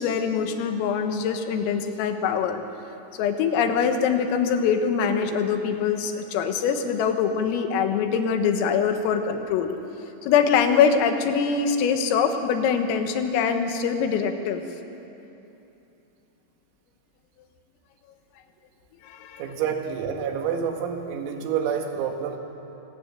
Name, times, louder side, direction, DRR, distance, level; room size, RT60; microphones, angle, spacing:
voice 1, 0.0-2.6 3.2-9.7 10.2-14.6 19.0-19.5, left 6 dB, 85° left, 6 dB, 4.0 m, -23 dB
voice 2, 19.4-22.4, right 7 dB, 85° right, 4 dB, 4.6 m, -28 dB
26.5 x 18.5 x 8.9 m, 3.0 s
omnidirectional pair, 6.0 m